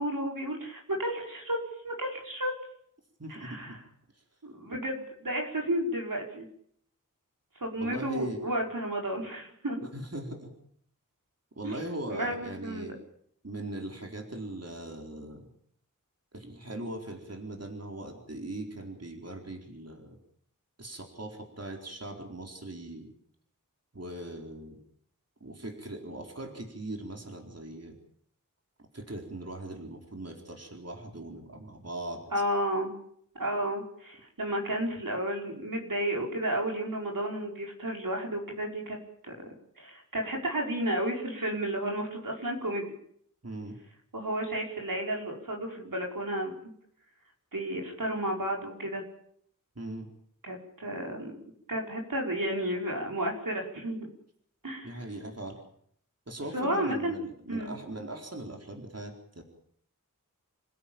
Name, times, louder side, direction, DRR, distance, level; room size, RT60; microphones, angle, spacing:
voice 1, 0.0-1.6 1.8-2.5 3.3-3.8 4.4-6.5 7.6-9.8 12.1-12.9 32.3-32.9 33.4-39.0 39.2-39.3 39.8-42.9 44.1-46.5 47.5-49.0 50.4-51.3 51.7-54.1 54.6-54.9 56.5-57.2 57.5-57.7, right 1 dB, 80° right, 0 dB, 5.4 m, -32 dB
voice 2, 3.2-3.8 4.1-4.2 7.8-8.4 9.9-10.5 11.5-12.9 13.4-15.5 16.3-20.2 20.8-23.1 23.9-24.8 25.4-28.0 28.9-32.2 43.4-43.8 49.8-50.1 54.8-55.6 56.3-59.4, right 1 dB, 50° right, 2 dB, 4.3 m, -40 dB
27.0 x 16.5 x 8.9 m, 0.68 s
wide cardioid pair, 50°, 33 cm